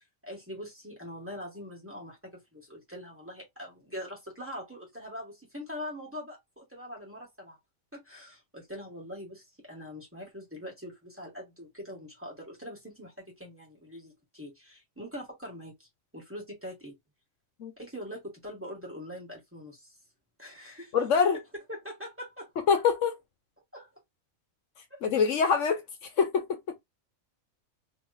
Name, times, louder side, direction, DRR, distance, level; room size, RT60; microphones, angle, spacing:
voice 1, 0.0-7.6 7.9-15.9 16.1-16.9 17.8-20.0 20.4-20.9 21.7-22.5 23.7-23.9 24.9-25.0, equal, 10° right, 1.5 m, -43 dB
voice 2, 20.9-21.4 22.6-23.2 25.0-26.8, left 6 dB, 70° left, 1.0 m, -25 dB
3.1 x 3.0 x 2.7 m
omnidirectional pair, 1.4 m